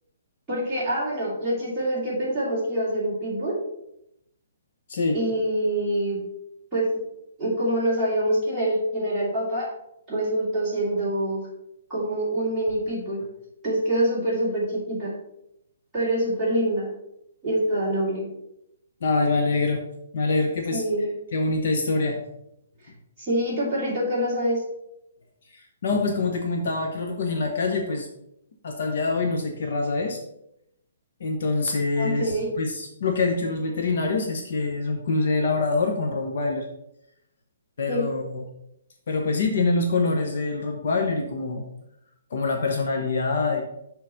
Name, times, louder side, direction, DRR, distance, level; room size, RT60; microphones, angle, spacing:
voice 1, 0.5-3.5 5.1-6.2 6.7-6.9 7.4-9.7 10.1-11.4 11.9-13.2 13.6-15.1 15.9-16.9 17.4-18.3 20.7-21.1 23.2-24.6 32.0-32.5 37.9-38.1, right 1 dB, 5° right, -13 dB, 2.8 m, -25 dB
voice 2, 19.0-19.8 20.1-20.8 21.3-22.2 25.5-28.1 28.6-30.2 31.2-36.7 37.8-38.4 39.1-41.6 42.3-43.6, left 3 dB, 50° left, 2 dB, 0.9 m, -25 dB
6.6 x 4.0 x 5.7 m, 0.81 s
hypercardioid pair, 180°, 0 cm